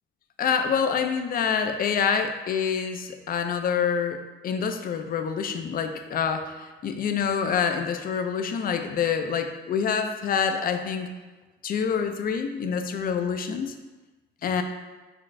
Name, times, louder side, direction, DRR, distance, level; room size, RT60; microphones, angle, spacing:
voice 1, 0.4-11.1 11.6-13.7 14.4-14.6, left 6 dB, 50° left, 7 dB, 0.4 m, -26 dB
4.0 x 2.4 x 3.2 m, 1.2 s
cardioid pair, 90°, 20 cm